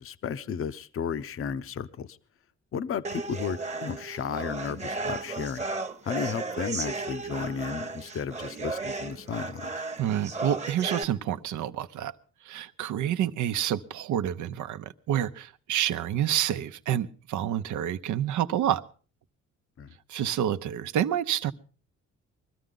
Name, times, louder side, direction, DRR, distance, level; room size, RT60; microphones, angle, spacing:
voice 1, 0.0-2.2 2.7-5.6 6.0-9.7 19.8-19.9, left 7 dB, 45° left, 13 dB, 0.7 m, -33 dB
sound 1, 3.0-11.0, right 3 dB, 25° right, 1.1 m, -34 dB
voice 2, 10.0-12.1 12.4-18.8 20.1-21.5, right 10 dB, 75° right, 12 dB, 0.8 m, -28 dB
21.5 x 13.5 x 3.8 m, 0.39 s
cardioid pair, 90°, 30 cm